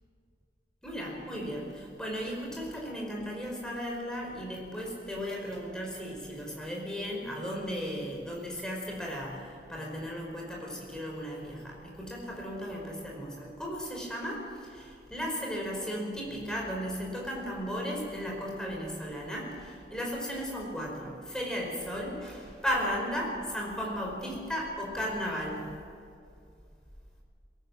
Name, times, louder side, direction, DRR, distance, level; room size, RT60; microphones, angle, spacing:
voice 1, 0.8-25.7, equal, 5° left, -2 dB, 5.0 m, -35 dB
22.5 x 17.5 x 7.7 m, 2.3 s
head